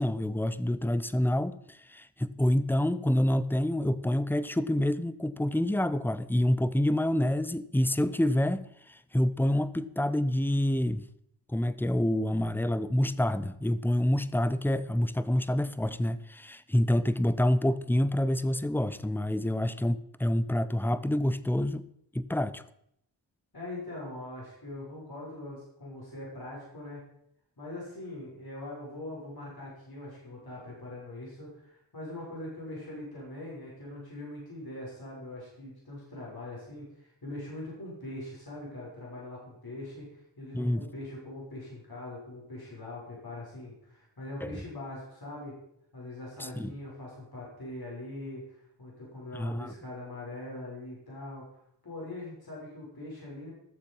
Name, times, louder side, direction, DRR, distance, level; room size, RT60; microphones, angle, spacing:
voice 1, 0.0-11.1 11.5-21.9 22.1-22.6 40.5-40.8 44.4-44.6 46.4-46.7 49.3-49.7, left 1 dB, 5° left, 0.7 m, -27 dB
voice 2, 23.5-27.0 27.6-45.5 45.9-51.4 51.8-53.5, left 1 dB, 50° left, 6.3 m, -42 dB
14.5 x 7.3 x 5.5 m
cardioid pair, 45°, 46 cm